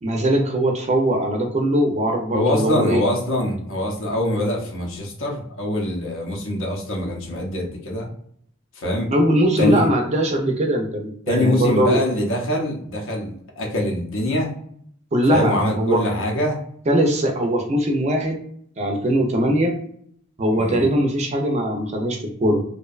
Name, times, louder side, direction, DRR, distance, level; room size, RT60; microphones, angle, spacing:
voice 1, 0.0-3.0 9.1-12.0 15.1-16.0 16.9-18.4 18.8-19.7 20.4-22.6, right 1 dB, 30° right, 2 dB, 0.4 m, -20 dB
voice 2, 2.3-8.1 8.8-9.1 9.6-9.9 11.3-14.5 15.3-16.6 20.5-20.8, left 1 dB, 60° left, 0 dB, 0.6 m, -23 dB
2.6 x 2.1 x 2.3 m, 0.65 s
head